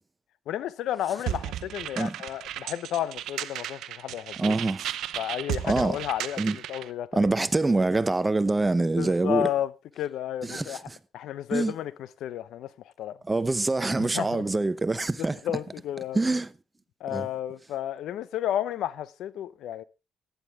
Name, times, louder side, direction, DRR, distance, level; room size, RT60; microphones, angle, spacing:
voice 1, 0.5-4.6 5.2-7.3 9.0-9.7 10.0-10.8 11.1-12.7 13.0-13.2 14.0-14.5 15.2-16.2 17.0-19.8, left 11 dB, 80° left, 0.7 m, -32 dB
sound 1, 1.3-6.9, right 12 dB, 80° right, 0.7 m, -35 dB
voice 2, 4.4-4.9 5.6-6.0 6.4-6.6 7.1-9.5 10.4-11.0 11.5-11.7 13.3-15.4 16.1-16.5 17.1-17.3, right 2 dB, 20° right, 0.7 m, -25 dB
14.5 x 10.5 x 3.4 m
cardioid pair, 90°, 0 cm